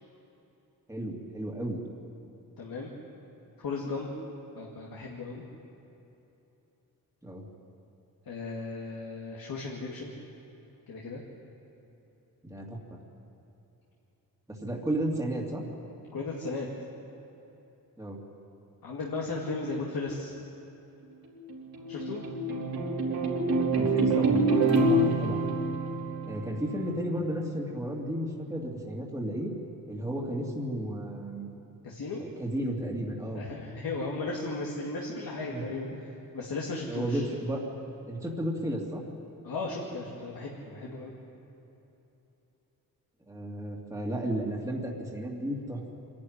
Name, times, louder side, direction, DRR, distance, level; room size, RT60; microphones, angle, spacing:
voice 1, 0.9-1.8 7.2-7.5 12.4-13.0 14.5-15.6 18.0-18.2 23.8-24.5 24.8-25.5 26.2-29.5 29.9-31.5 32.2-33.4 35.5-35.8 36.9-37.6 38.1-39.0 43.3-45.8, right 1 dB, 10° right, -2 dB, 2.5 m, -33 dB
voice 2, 2.6-2.9 3.6-4.1 4.6-5.4 8.3-10.1 10.9-11.2 16.1-16.7 18.8-20.3 21.9-22.2 31.8-32.2 33.3-35.9 36.3-37.2 39.4-41.1, left 3 dB, 70° left, -3 dB, 2.5 m, -35 dB
sound 1, 21.3-26.9, right 2 dB, 70° right, 3.3 m, -26 dB
26.0 x 11.5 x 9.5 m, 3.0 s
wide cardioid pair, 125°, 37 cm